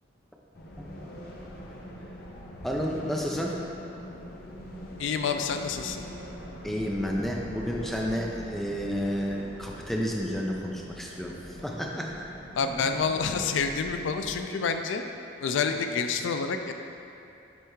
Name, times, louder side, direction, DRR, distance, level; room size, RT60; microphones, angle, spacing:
Under the bridge, 0.5-14.4, equal, 50° left, 0.7 m, -43 dB
voice 1, 2.6-3.6 6.6-11.4 11.6-12.2, equal, ahead, -2 dB, 0.4 m, -31 dB
voice 2, 5.0-6.0 12.6-15.0 15.4-16.7, left 5 dB, 80° left, 6 dB, 0.3 m, -28 dB
9.4 x 3.3 x 3.1 m, 2.7 s
head